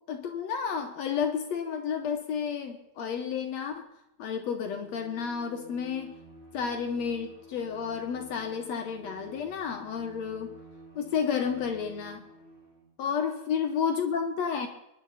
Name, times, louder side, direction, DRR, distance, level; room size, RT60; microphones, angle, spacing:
voice 1, 0.1-3.9 4.2-6.2 6.5-10.5 11.0-12.2 13.0-14.7, left 7 dB, 65° left, 5 dB, 1.9 m, -31 dB
Bowed string instrument, 4.4-13.0, right 1 dB, 15° right, 4.9 m, -51 dB
24.0 x 11.0 x 4.2 m, 0.84 s
omnidirectional pair, 4.1 m